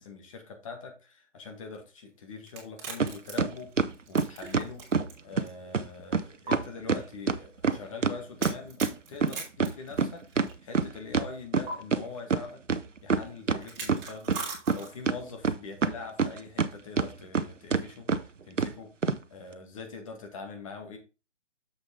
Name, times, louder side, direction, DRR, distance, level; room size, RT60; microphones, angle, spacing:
voice 1, 0.0-3.7 4.1-4.9 5.2-12.6 13.0-21.0, left 4 dB, 25° left, 4 dB, 1.8 m, -43 dB
sound 1, 2.5-5.1 5.5-5.6 6.5-6.6 8.4-10.5 11.7-11.8 13.6-15.1, right 4 dB, 20° right, 3.0 m, -39 dB
sound 2, 3.0-3.1 3.4-5.1 5.4-5.5 5.7-5.9 6.1-6.2 6.5-8.9 9.2-12.0 12.3-12.4 12.7-13.6 13.9-14.8 15.1-16.7 17.0-17.4 17.7-17.8 18.1-18.2 18.6-18.7 19.0-19.2, right 5 dB, 80° right, 1.0 m, -26 dB
7.3 x 6.5 x 3.7 m, 0.30 s
figure-of-eight pair, 150°, 36 cm